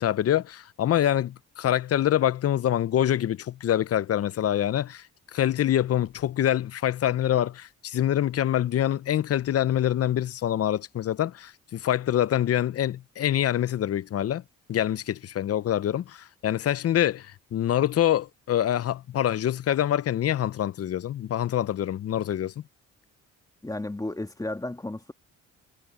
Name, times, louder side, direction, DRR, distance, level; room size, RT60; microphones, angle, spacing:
voice 1, 0.0-5.0 5.3-14.4 14.7-22.5, left 11 dB, 55° left, 0.7 m, -25 dB
voice 2, 23.6-25.1, left 2 dB, 10° left, 1.8 m, -33 dB
cardioid pair, 90°, 30 cm